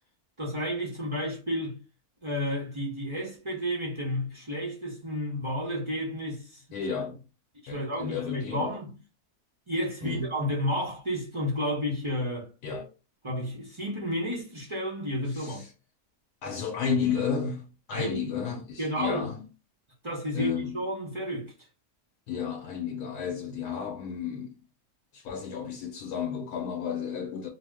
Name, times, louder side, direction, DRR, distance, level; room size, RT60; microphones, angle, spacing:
voice 1, 0.4-1.8 2.2-6.6 7.6-8.9 9.7-12.5 13.2-15.6 17.9-18.2 18.8-19.3 20.0-21.5, equal, 40° right, 0.4 m, -31 dB
voice 2, 6.7-7.2 7.7-8.7 10.0-10.3 12.6-12.9 15.3-15.7 16.4-19.4 20.3-20.8 22.3-24.6 25.1-27.5, left 6 dB, 85° left, 1.1 m, -32 dB
2.7 x 2.0 x 3.4 m
omnidirectional pair, 1.6 m